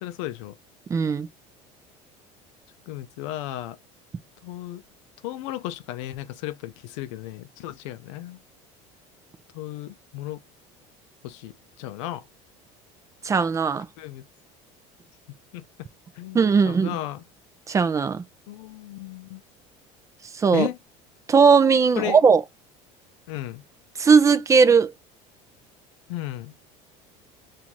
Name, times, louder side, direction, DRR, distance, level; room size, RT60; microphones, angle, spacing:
voice 1, 0.0-0.5 2.9-3.8 4.4-4.8 5.2-8.4 9.5-10.4 11.2-11.5 11.8-12.2 14.0-14.2 15.5-15.6 16.2-17.2 18.5-19.4 20.5-20.8 22.0-22.2 23.3-23.6 26.1-26.5, left 15 dB, 90° left, 0.5 m, -34 dB
voice 2, 0.9-1.3 13.2-13.9 16.3-16.9 17.7-18.2 20.4-20.7 21.3-22.4 24.0-24.9, right 5 dB, 20° right, 0.5 m, -18 dB
5.4 x 2.5 x 3.0 m
cardioid pair, 125°, 15 cm